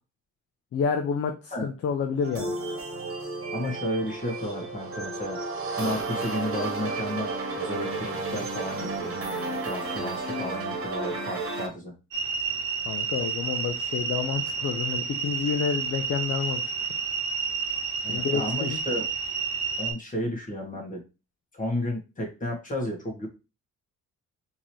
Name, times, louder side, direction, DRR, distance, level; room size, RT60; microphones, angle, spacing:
voice 1, 0.7-2.6 12.9-16.6 18.1-18.8, left 6 dB, 50° left, 6 dB, 0.5 m, -29 dB
sound 1, 2.2-11.7, right 3 dB, 45° right, 1.2 m, -32 dB
voice 2, 3.5-5.4 5.8-9.1 9.6-11.9 18.0-19.0 19.8-21.0 21.5-23.3, left 1 dB, 25° left, 0 dB, 1.5 m, -32 dB
sound 2, 12.1-19.9, right 5 dB, 90° right, 1.0 m, -30 dB
3.7 x 2.9 x 3.1 m, 0.29 s
cardioid pair, 90°, 30 cm